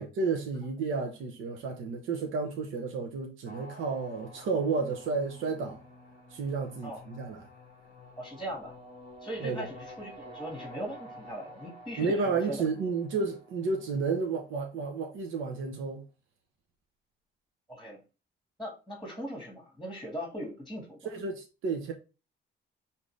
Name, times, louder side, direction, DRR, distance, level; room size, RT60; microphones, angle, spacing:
voice 1, 0.0-5.8 6.3-7.5 9.4-9.7 12.0-16.0 21.0-21.9, right 4 dB, 80° right, 0.9 m, -31 dB
sound 1, 3.4-14.6, left 1 dB, 50° right, 2.6 m, -50 dB
voice 2, 8.2-8.8 9.2-12.6 17.7-18.0 18.6-21.1, equal, ahead, 1.7 m, -39 dB
5.2 x 2.9 x 3.1 m
cardioid pair, 90°, 20 cm